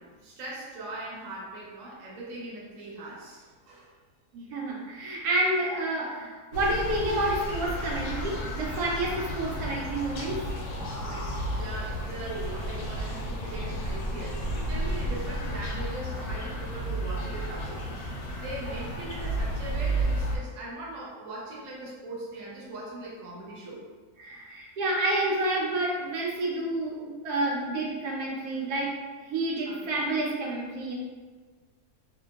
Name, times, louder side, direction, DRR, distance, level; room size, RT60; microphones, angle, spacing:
voice 1, 0.0-3.9 10.8-23.8 28.4-28.6 29.6-29.9, right 2 dB, 65° right, -5 dB, 1.0 m, -40 dB
voice 2, 4.3-10.4 10.7-11.0 24.2-28.9 29.3-30.9, right 1 dB, 90° right, -3 dB, 1.1 m, -29 dB
sound 1, 6.5-20.4, right 1 dB, 90° left, 1.1 m, -32 dB
2.9 x 2.5 x 2.2 m, 1.4 s
omnidirectional pair, 1.6 m